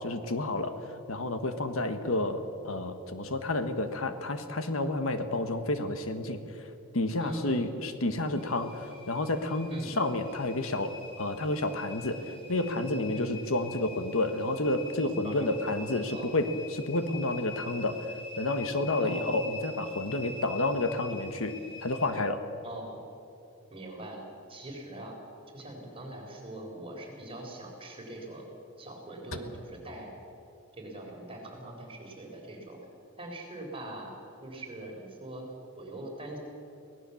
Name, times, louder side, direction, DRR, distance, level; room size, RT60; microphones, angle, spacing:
voice 1, 0.0-22.4, left 2 dB, 75° left, 8 dB, 1.4 m, -30 dB
voice 2, 7.2-7.7 9.7-9.9 13.1-13.3 15.2-15.9 16.1-16.4 19.0-19.4 22.6-23.0 23.7-24.2 24.5-25.2 25.5-28.5 28.8-30.1 30.8-32.8 33.2-34.1 34.4-35.5 35.8-36.4, right 1 dB, 25° right, 0 dB, 4.2 m, -42 dB
sound 1, 8.4-22.1, left 3 dB, 25° left, 3.2 m, -45 dB
24.0 x 18.0 x 7.1 m, 2.7 s
head